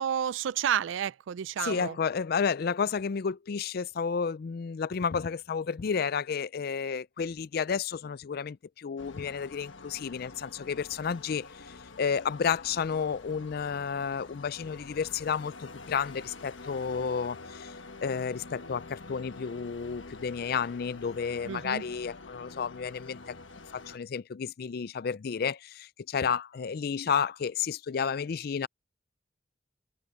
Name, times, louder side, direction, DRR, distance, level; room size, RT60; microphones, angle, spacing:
voice 1, 0.0-2.0 21.4-21.8, right 9 dB, 80° right, 0.3 m, -30 dB
voice 2, 1.6-11.7 12.0-17.7 18.0-23.4 23.7-28.7, left 6 dB, 55° left, 0.4 m, -31 dB
sound 1, 9.0-24.0, left 3 dB, 85° left, 1.2 m, -47 dB
head